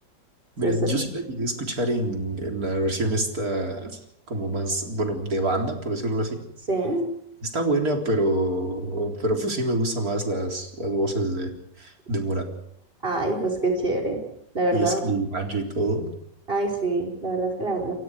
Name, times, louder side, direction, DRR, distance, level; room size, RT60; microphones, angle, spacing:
voice 1, 0.6-4.0 4.3-6.4 7.4-11.5 11.8-12.5 14.7-16.1, right 1 dB, 50° right, 2 dB, 4.3 m, -26 dB
voice 2, 6.7-7.1 13.0-14.2 14.5-15.0 16.5-17.9, right 2 dB, 30° right, 1 dB, 5.4 m, -25 dB
29.5 x 23.5 x 5.0 m, 0.71 s
omnidirectional pair, 1.9 m